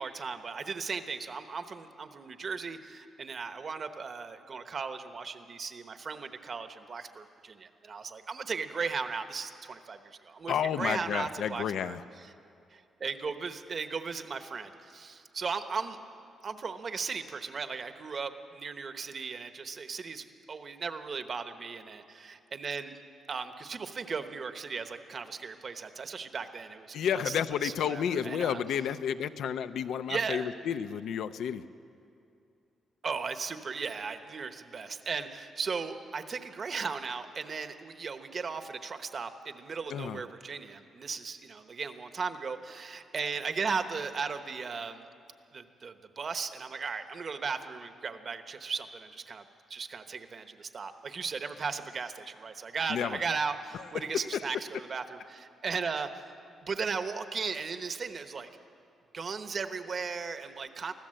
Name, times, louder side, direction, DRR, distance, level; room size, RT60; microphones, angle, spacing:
voice 1, 0.0-12.0 12.7-16.0 16.4-23.0 23.3-27.3 27.6-28.6 30.1-30.5 33.0-45.0 45.5-49.4 49.7-56.2 56.6-58.5 59.1-60.9, right 5 dB, 35° right, 8 dB, 1.0 m, -36 dB
voice 2, 10.5-12.0 26.9-31.6 39.9-40.2 52.9-53.2 53.9-54.4, left 8 dB, 75° left, 11 dB, 0.6 m, -31 dB
24.5 x 15.5 x 7.7 m, 2.6 s
cardioid pair, 165°, 0 cm